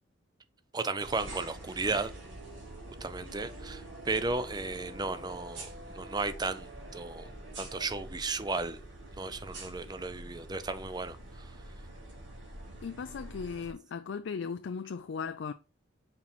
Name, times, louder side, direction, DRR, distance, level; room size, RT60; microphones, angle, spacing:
voice 1, 0.7-2.1 3.0-7.3 7.6-8.8 9.2-11.5, right 3 dB, 20° right, 0.5 m, -34 dB
sound 1, 1.0-13.7, right 1 dB, 60° right, 2.6 m, -46 dB
voice 2, 12.8-15.5, left 5 dB, 70° left, 0.4 m, -37 dB
6.1 x 4.4 x 4.0 m
head